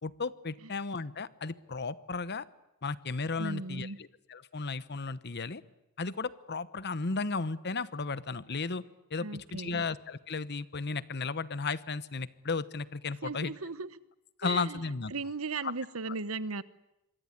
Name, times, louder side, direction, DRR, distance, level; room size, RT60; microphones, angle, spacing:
voice 1, 0.0-2.4 2.8-3.9 4.3-5.6 6.0-8.8 9.1-13.5 14.4-15.1 15.6-15.7, left 4 dB, 50° left, 16 dB, 1.1 m, -34 dB
voice 2, 3.4-4.0 9.2-9.8 13.2-14.0 14.4-14.8 15.1-16.6, right 3 dB, 75° right, 16 dB, 1.2 m, -37 dB
26.5 x 23.0 x 9.9 m, 0.87 s
head